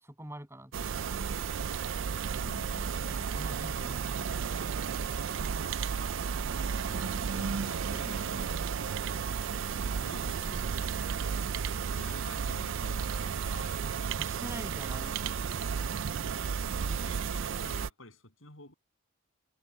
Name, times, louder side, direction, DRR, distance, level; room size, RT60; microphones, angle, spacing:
voice 1, 0.0-1.0 3.0-4.5 14.2-15.3, right 1 dB, 10° right, 7.4 m, -45 dB
sound 1, 0.7-17.9, right 6 dB, 60° right, 0.4 m, -33 dB
voice 2, 2.4-3.3 6.9-9.3 10.0-11.0 12.0-13.9 16.6-18.7, left 1 dB, 65° left, 7.9 m, -49 dB
head